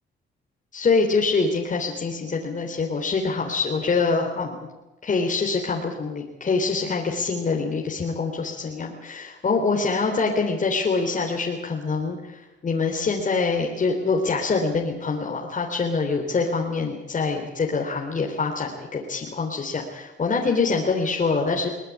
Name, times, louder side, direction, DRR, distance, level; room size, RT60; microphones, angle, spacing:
voice 1, 0.7-4.7 5.0-21.7, left 4 dB, 40° left, 0 dB, 3.7 m, -25 dB
22.5 x 18.5 x 8.5 m, 1.0 s
cardioid pair, 90°, 20 cm